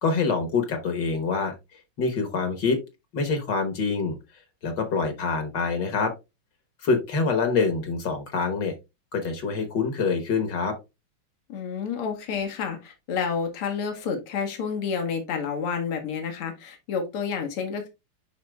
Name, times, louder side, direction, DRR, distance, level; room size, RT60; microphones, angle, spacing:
voice 1, 0.0-1.5 2.0-2.8 3.1-4.2 4.6-6.1 6.8-8.7 9.1-10.7, left 4 dB, 60° left, 7 dB, 1.6 m, -25 dB
voice 2, 11.5-17.9, left 6 dB, 85° left, 4 dB, 2.1 m, -29 dB
11.0 x 4.1 x 2.2 m, 0.24 s
omnidirectional pair, 2.4 m